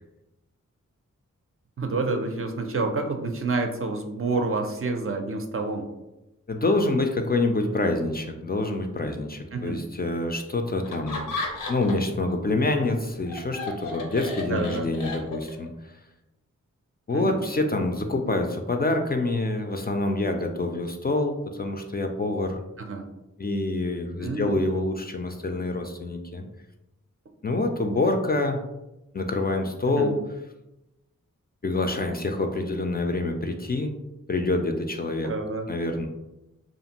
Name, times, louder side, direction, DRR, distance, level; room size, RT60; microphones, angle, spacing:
voice 1, 1.8-5.9 9.5-9.8 14.5-14.9 17.1-17.4 22.8-23.1 24.2-24.5 29.9-30.2 35.2-35.7, right 3 dB, 45° right, 4 dB, 0.4 m, -28 dB
voice 2, 6.5-11.4 11.7-16.0 17.1-22.6 23.4-26.4 27.4-28.6 29.1-30.2 31.6-34.0 34.3-35.3 35.7-36.1, left 2 dB, 30° left, 4 dB, 0.3 m, -26 dB
Laughter, 10.8-12.1 12.5-15.7, left 3 dB, 80° left, 0.6 m, -34 dB
2.5 x 2.5 x 2.8 m, 0.95 s
cardioid pair, 40°, 32 cm